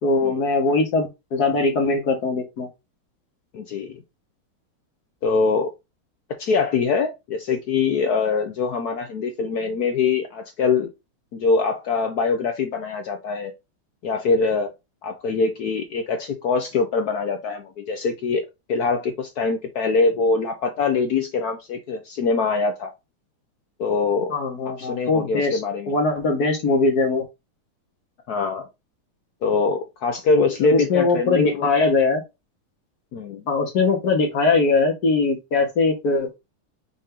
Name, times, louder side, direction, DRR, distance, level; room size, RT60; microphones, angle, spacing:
voice 1, 0.0-2.7 24.3-25.6 25.9-27.2 30.6-32.2 33.5-36.3, left 3 dB, 55° left, 1.3 m, -21 dB
voice 2, 3.5-4.0 5.2-5.7 6.4-10.9 11.3-13.5 14.0-14.7 15.0-22.9 23.8-24.3 24.8-25.9 28.3-28.7 29.4-31.7 33.1-33.4, left 4 dB, 70° left, 0.9 m, -23 dB
5.6 x 2.5 x 3.6 m
omnidirectional pair, 2.3 m